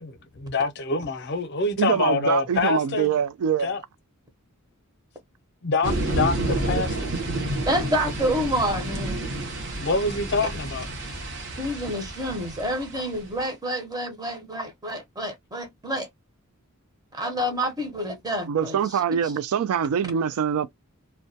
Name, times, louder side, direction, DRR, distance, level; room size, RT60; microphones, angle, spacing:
voice 1, 0.0-3.1 3.6-3.8 5.6-7.1 9.7-10.9, left 3 dB, 50° left, 0.5 m, -26 dB
voice 2, 1.8-3.7 6.7-6.9 18.5-20.7, right 8 dB, 70° right, 0.3 m, -24 dB
sound 1, 5.8-13.3, right 1 dB, 55° right, 0.7 m, -30 dB
voice 3, 7.6-9.2 11.6-16.1 17.1-19.0, equal, 15° right, 0.6 m, -28 dB
2.2 x 2.2 x 2.6 m
head